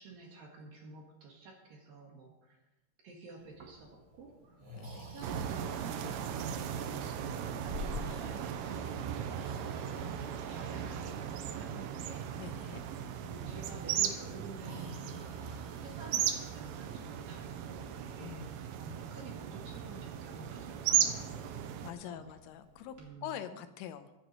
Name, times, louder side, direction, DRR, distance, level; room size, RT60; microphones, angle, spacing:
voice 1, 0.0-2.6 3.0-4.6 4.9-12.6 13.2-15.5 15.8-22.3 23.0-23.6, right 4 dB, 60° right, 0 dB, 2.6 m, -50 dB
Breathing, 3.4-23.1, left 1 dB, 35° right, 1.9 m, -51 dB
sound 1, 5.2-21.9, right 9 dB, 85° right, 3.4 m, -37 dB
voice 2, 7.9-8.3 10.0-10.2 12.4-12.8 18.2-18.6 21.8-23.0 23.2-24.1, left 10 dB, 85° left, 9 dB, 3.4 m, -45 dB
23.5 x 9.4 x 3.1 m, 1.0 s
omnidirectional pair, 5.6 m